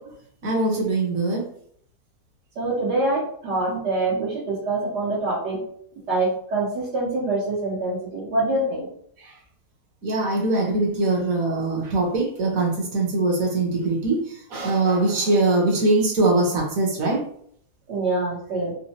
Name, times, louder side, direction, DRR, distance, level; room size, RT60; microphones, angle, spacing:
voice 1, 0.4-1.4 10.0-14.2 14.5-17.2, right 2 dB, 60° right, -2 dB, 1.3 m, -22 dB
voice 2, 2.6-5.6 6.1-8.9 17.9-18.7, right 2 dB, 80° right, -8 dB, 1.7 m, -25 dB
4.2 x 2.2 x 2.8 m, 0.64 s
omnidirectional pair, 1.8 m